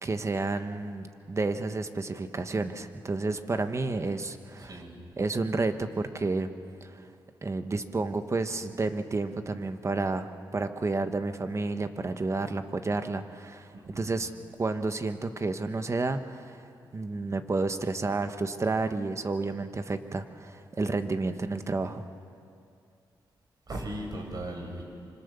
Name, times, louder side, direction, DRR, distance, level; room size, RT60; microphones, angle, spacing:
voice 1, 0.0-4.8 5.2-6.5 6.8-7.0 7.4-14.3 14.6-16.6 16.9-22.1, right 3 dB, 35° right, 8 dB, 1.4 m, -31 dB
voice 2, 4.6-5.0 13.7-14.2 23.7-24.8, right 1 dB, 50° right, 2 dB, 6.1 m, -38 dB
25.5 x 25.0 x 7.0 m, 2.5 s
cardioid pair, 75°, 8 cm